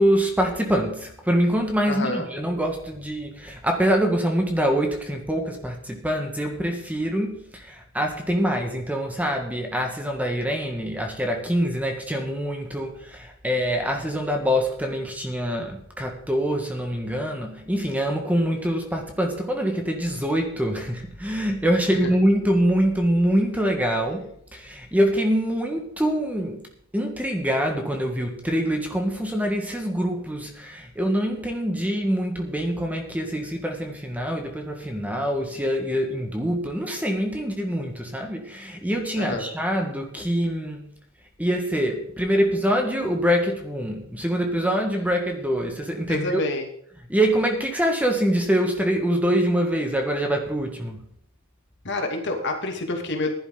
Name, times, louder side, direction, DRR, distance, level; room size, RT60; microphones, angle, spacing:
voice 1, 0.0-26.6 26.9-40.9 41.4-46.4 47.1-51.0, equal, 5° right, 3 dB, 1.7 m, -24 dB
voice 2, 1.8-2.3 21.9-22.1 39.2-39.5 46.1-46.7 51.8-53.3, left 2 dB, 55° left, 3 dB, 2.4 m, -28 dB
15.5 x 11.0 x 3.9 m, 0.69 s
head